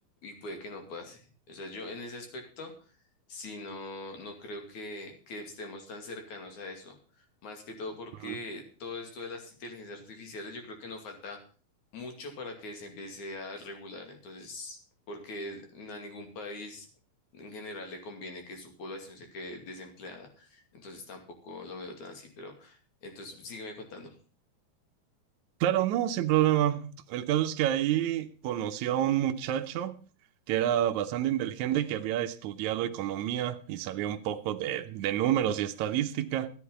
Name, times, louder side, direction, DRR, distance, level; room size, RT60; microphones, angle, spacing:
voice 1, 0.2-2.7 3.3-11.4 11.9-14.8 15.1-16.9 17.3-24.2, left 2 dB, 55° left, 3.7 m, -42 dB
voice 2, 25.6-26.8 27.1-29.9 30.5-36.5, right 12 dB, 85° right, 1.7 m, -28 dB
13.5 x 10.5 x 5.6 m
omnidirectional pair, 4.4 m